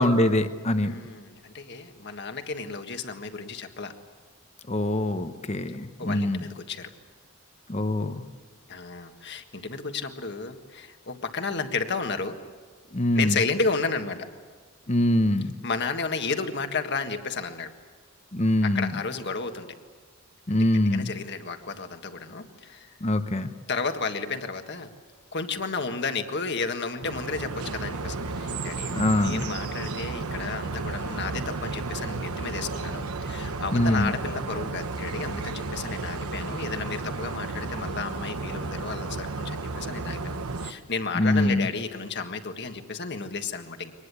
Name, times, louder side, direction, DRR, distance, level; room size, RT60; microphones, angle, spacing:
voice 1, 0.0-0.9 4.7-6.4 7.7-8.2 12.9-13.4 14.9-15.5 18.3-18.9 20.5-21.1 23.0-23.5 28.9-29.5 33.7-34.2 41.1-41.7, left 1 dB, 30° left, 10 dB, 0.9 m, -23 dB
voice 2, 0.8-3.9 6.0-6.9 8.7-12.4 13.1-14.3 15.6-17.7 18.6-19.7 20.5-20.6 20.9-22.9 23.7-24.9 25.3-43.9, left 4 dB, 50° left, 7 dB, 1.6 m, -32 dB
sound 1, 27.0-40.7, right 3 dB, 85° right, 1.1 m, -33 dB
24.5 x 19.5 x 8.4 m, 1.5 s
head